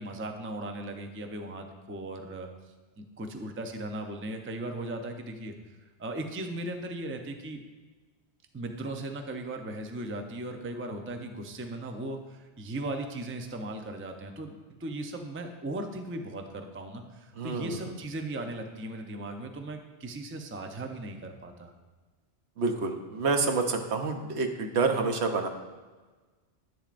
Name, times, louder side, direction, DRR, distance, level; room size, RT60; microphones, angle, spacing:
voice 1, 0.0-2.5 3.0-5.5 6.0-7.6 8.5-21.7, right 1 dB, 15° right, 4 dB, 0.4 m, -37 dB
voice 2, 17.4-17.8 22.6-25.5, right 4 dB, 70° right, 4 dB, 1.1 m, -28 dB
10.5 x 9.1 x 2.5 m, 1.3 s
omnidirectional pair, 1.2 m